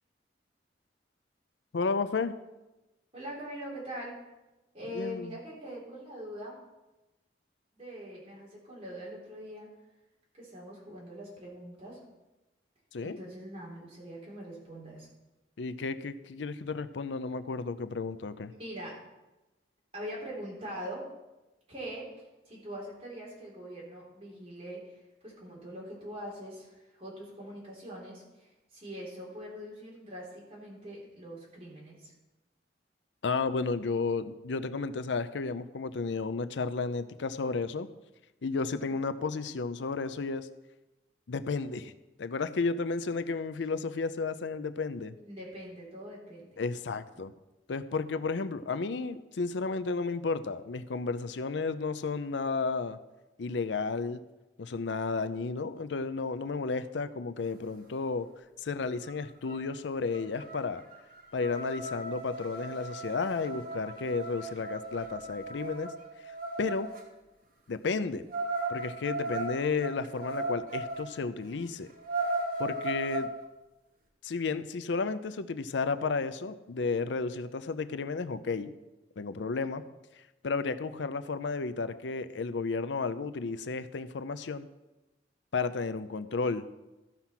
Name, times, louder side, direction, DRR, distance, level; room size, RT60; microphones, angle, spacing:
voice 1, 1.7-2.3 4.9-5.3 12.9-13.2 15.6-18.5 33.2-37.9 38.4-40.5 41.3-41.9 42.2-45.2 46.6-47.3 47.7-53.0 53.4-54.2 54.6-58.3 58.6-60.8 61.3-65.9 66.2-66.9 67.7-68.3 68.7-71.9 72.6-73.3 74.2-78.7 79.2-79.8 80.1-84.7 85.5-86.7, left 4 dB, 80° left, 13 dB, 0.5 m, -32 dB
voice 2, 3.1-4.2 4.7-6.6 7.7-9.7 10.4-12.0 13.0-15.1 18.6-19.0 19.9-21.1 21.7-32.1 38.9-39.0 45.2-46.6 47.1-47.2, equal, 35° right, -5 dB, 3.9 m, -43 dB
sound 1, 59.1-59.2 59.4-59.8 60.1-67.0 68.3-71.1 71.5-71.6 71.9-73.3, right 2 dB, 50° right, 1.6 m, -36 dB
14.0 x 5.8 x 5.8 m, 1.0 s
head